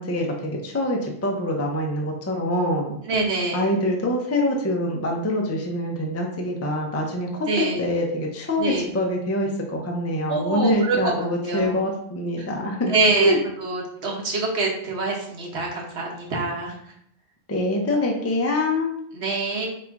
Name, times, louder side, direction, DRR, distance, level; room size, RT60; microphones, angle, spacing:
voice 1, 0.0-3.0 3.5-13.4 17.5-18.9, left 1 dB, 20° left, 1 dB, 0.5 m, -25 dB
voice 2, 3.1-3.7 7.5-7.8 8.6-8.9 10.3-11.1 11.4-11.8 12.4-12.5 12.9-16.8 19.1-19.7, right 3 dB, 80° right, -1 dB, 1.3 m, -25 dB
4.8 x 2.6 x 3.5 m, 0.71 s
omnidirectional pair, 1.1 m